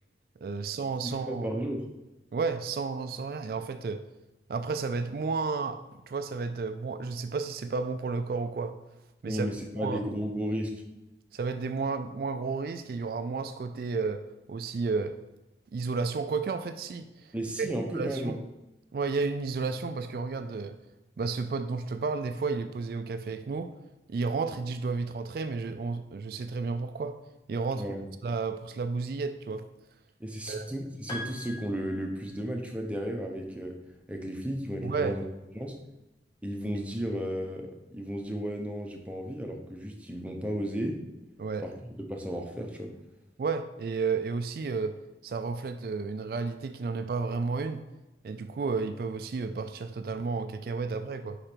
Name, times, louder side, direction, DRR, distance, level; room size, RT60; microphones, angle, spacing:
voice 1, 0.4-1.5 2.3-4.0 4.5-5.8 6.1-8.7 9.2-9.5 9.8-10.0 11.3-14.2 14.5-15.2 15.7-17.3 17.6-18.3 18.9-20.8 21.2-23.7 24.1-27.2 27.5-27.8 28.2-29.7 30.5-30.7 34.8-35.2 41.4-41.6 43.4-45.0 45.2-47.8 48.2-51.4, right 4 dB, 55° right, 9 dB, 0.3 m, -32 dB
voice 2, 1.0-1.9 9.2-10.8 17.3-18.4 27.8-28.1 30.2-33.8 34.1-35.2 35.5-35.7 36.4-41.0 41.6-41.7 42.1-42.9, equal, 5° right, 1 dB, 0.7 m, -34 dB
Piano, 31.1-32.8, left 1 dB, 25° left, 1.1 m, -42 dB
5.0 x 4.9 x 4.4 m, 1.0 s
head